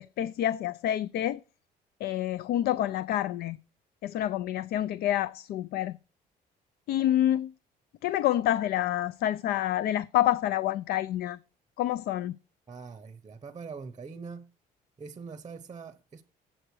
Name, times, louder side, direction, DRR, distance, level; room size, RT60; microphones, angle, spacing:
voice 1, 0.0-1.4 2.0-3.6 4.0-6.0 6.9-7.5 8.0-11.4 11.8-12.4, left 12 dB, 65° left, 0.4 m, -28 dB
voice 2, 12.7-14.5 15.0-16.2, right 5 dB, 25° right, 0.7 m, -43 dB
7.8 x 7.6 x 4.6 m
cardioid pair, 110°, 17 cm